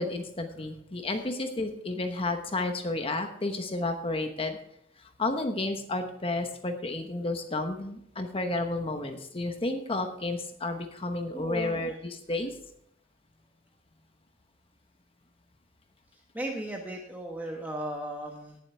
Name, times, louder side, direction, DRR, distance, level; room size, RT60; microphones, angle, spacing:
voice 1, 0.0-4.6 5.0-12.6, left 2 dB, 30° left, 6 dB, 1.1 m, -31 dB
voice 2, 11.3-11.9 16.3-18.6, right 1 dB, 10° right, 0 dB, 1.3 m, -36 dB
18.0 x 7.6 x 3.4 m, 0.75 s
head